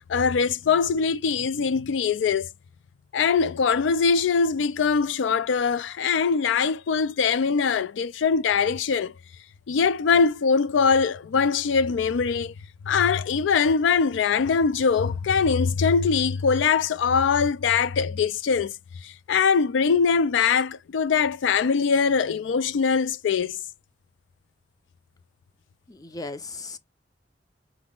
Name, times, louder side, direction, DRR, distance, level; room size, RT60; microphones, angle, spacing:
voice 1, 0.1-2.5 3.1-9.1 9.7-12.5 12.9-18.7 19.3-23.6, left 5 dB, 85° left, 0.4 m, -22 dB
voice 2, 25.9-26.8, left 3 dB, 20° left, 0.5 m, -37 dB
6.0 x 2.0 x 3.6 m
head